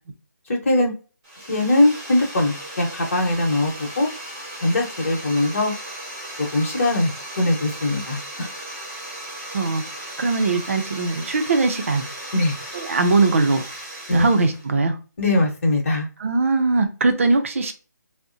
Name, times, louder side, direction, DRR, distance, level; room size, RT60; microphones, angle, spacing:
voice 1, 0.5-0.9 1.5-4.1 4.6-5.7 6.4-8.5 12.3-12.6 14.1-14.3 15.2-16.1, left 1 dB, 45° left, 1.1 m, -21 dB
sound 1, 1.2-14.7, right 1 dB, 20° right, 0.9 m, -36 dB
voice 2, 10.2-12.0 12.7-13.7 14.1-15.0 16.2-17.7, right 3 dB, 45° right, 0.5 m, -20 dB
3.6 x 2.1 x 2.6 m
hypercardioid pair, 170°, 10 cm